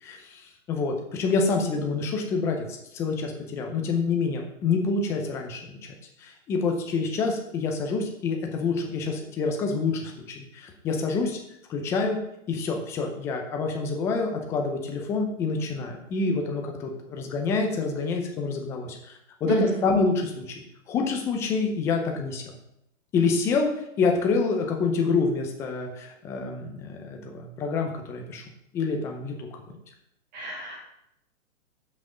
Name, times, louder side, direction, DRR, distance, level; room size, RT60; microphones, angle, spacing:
voice 1, 0.0-5.8 6.2-11.4 11.7-12.2 12.5-22.4 23.1-23.7 24.0-28.4 28.7-29.5, left 4 dB, 5° left, 2 dB, 0.5 m, -27 dB
voice 2, 19.4-19.8 30.3-30.8, right 3 dB, 30° right, -2 dB, 2.3 m, -30 dB
7.8 x 6.0 x 5.0 m, 0.80 s
hypercardioid pair, 140°, 40 cm